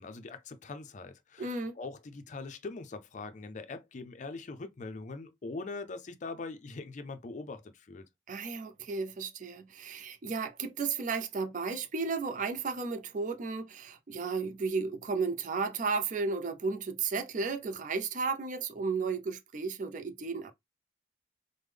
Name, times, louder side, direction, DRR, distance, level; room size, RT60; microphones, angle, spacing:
voice 1, 0.0-8.1, left 3 dB, 40° left, 0.4 m, -42 dB
voice 2, 1.4-1.8 8.3-20.5, right 4 dB, 45° right, 0.5 m, -34 dB
3.5 x 2.1 x 3.2 m
head